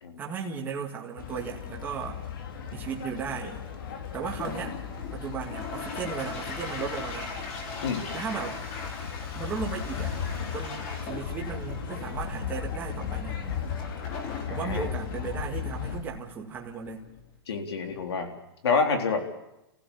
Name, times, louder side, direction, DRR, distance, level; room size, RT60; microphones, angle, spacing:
voice 1, 0.2-2.2 2.7-3.6 4.1-4.7 5.1-7.3 8.1-8.6 9.3-10.2 10.5-13.4 14.5-17.0, right 6 dB, 15° right, -1 dB, 2.2 m, -36 dB
sound 1, 1.2-16.0, left 7 dB, 55° left, 2.7 m, -36 dB
Toilet flush, 4.2-17.3, left 4 dB, 35° left, 4.2 m, -41 dB
voice 2, 14.5-14.9 17.5-18.4 18.6-19.2, left 4 dB, 75° left, 3 dB, 4.1 m, -28 dB
29.5 x 15.5 x 7.2 m, 0.91 s
hypercardioid pair, 165°, 13 cm